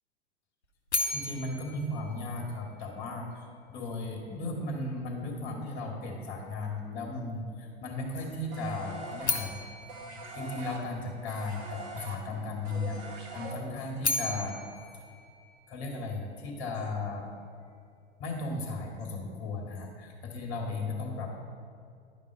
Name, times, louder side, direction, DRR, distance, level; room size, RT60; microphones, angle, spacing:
sound 1, 0.9-3.0 9.2-11.4 13.7-16.2, left 3 dB, 75° left, 0.9 m, -35 dB
voice 1, 1.1-9.6 10.3-14.7 15.7-17.3 18.2-21.4, left 2 dB, 40° left, -1 dB, 2.5 m, -36 dB
sound 2, 8.5-14.0, right 2 dB, 30° right, 1.4 m, -43 dB
11.0 x 5.3 x 5.3 m, 2.4 s
figure-of-eight pair, 95°, 34 cm